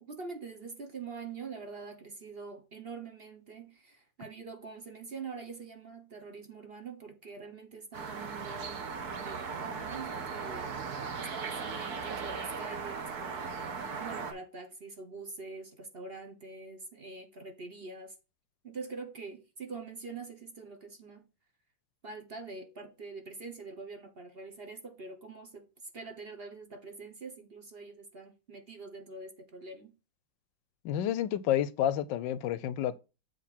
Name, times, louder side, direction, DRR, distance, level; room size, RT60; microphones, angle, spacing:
voice 1, 0.0-8.9 9.2-13.6 14.0-18.1 18.6-21.3 22.0-30.0, right 4 dB, 35° right, 1.1 m, -45 dB
sound 1, 7.9-14.3, right 5 dB, 55° right, 1.6 m, -38 dB
voice 2, 30.8-33.0, left 11 dB, 75° left, 1.2 m, -30 dB
7.8 x 3.5 x 5.8 m
omnidirectional pair, 2.1 m